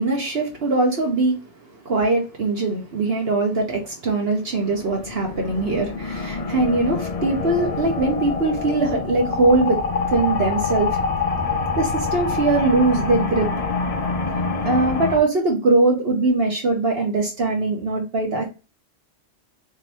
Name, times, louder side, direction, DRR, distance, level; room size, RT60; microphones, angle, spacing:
voice 1, 0.0-1.4 1.8-9.8 10.1-10.9 11.7-13.5 14.6-18.5, right 2 dB, 60° right, 1 dB, 1.2 m, -21 dB
sound 1, 4.5-15.2, left 4 dB, 45° left, 0.5 m, -26 dB
3.9 x 3.2 x 2.9 m, 0.31 s
omnidirectional pair, 1.2 m